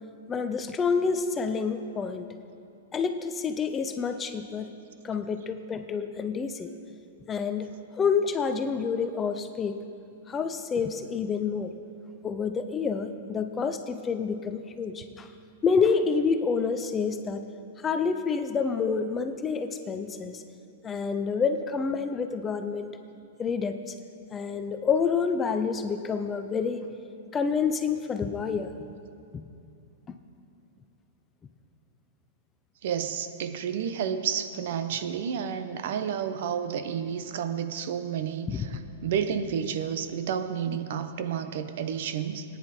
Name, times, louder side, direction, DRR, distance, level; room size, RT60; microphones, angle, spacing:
voice 1, 0.3-2.3 2.9-4.7 5.0-6.7 7.3-7.7 8.0-9.8 10.3-11.7 12.2-15.3 15.6-17.5 17.8-20.4 20.8-23.0 23.4-23.9 24.3-26.9 27.3-28.7 29.3-29.4 30.1-30.2 38.5-38.6, left 5 dB, 15° left, 8 dB, 0.4 m, -28 dB
voice 2, 32.8-42.4, right 8 dB, 55° right, 10 dB, 0.8 m, -31 dB
17.5 x 9.8 x 4.3 m, 2.6 s
supercardioid pair, 165°, 0 cm